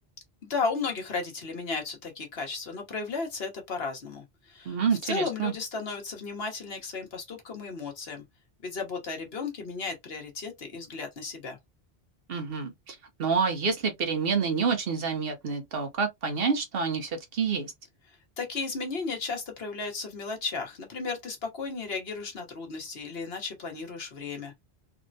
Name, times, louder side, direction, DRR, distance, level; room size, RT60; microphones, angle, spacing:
voice 1, 0.5-4.8 5.0-8.2 8.6-11.6 18.1-24.6, left 4 dB, 75° left, 1.3 m, -34 dB
voice 2, 4.7-5.5 12.3-17.7, right 5 dB, 70° right, 1.0 m, -28 dB
3.5 x 2.1 x 2.6 m
omnidirectional pair, 1.0 m